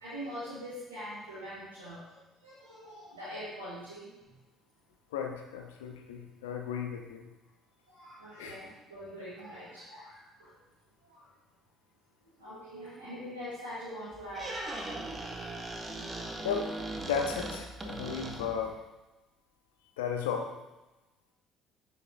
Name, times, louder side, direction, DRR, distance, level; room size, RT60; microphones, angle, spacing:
voice 1, 0.0-4.3 7.9-10.5 11.0-11.3 12.2-14.9, equal, 75° right, -11 dB, 2.1 m, -43 dB
voice 2, 5.1-7.3 8.4-8.5 16.4-18.8 20.0-20.5, left 7 dB, 70° left, 2 dB, 0.8 m, -35 dB
Squeak, 14.1-18.7, right 2 dB, 25° right, 1.0 m, -39 dB
10.0 x 5.2 x 2.3 m, 1.0 s
figure-of-eight pair, 50°, 0 cm